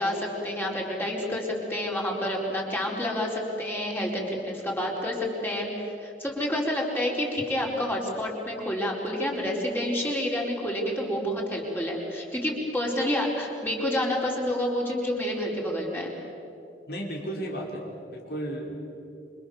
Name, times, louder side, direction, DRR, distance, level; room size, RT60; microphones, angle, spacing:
voice 1, 0.0-5.7 6.0-16.1, left 1 dB, 10° left, -2 dB, 4.8 m, -29 dB
voice 2, 16.9-18.8, right 1 dB, 60° left, 0 dB, 5.1 m, -34 dB
28.0 x 26.0 x 7.3 m, 2.7 s
head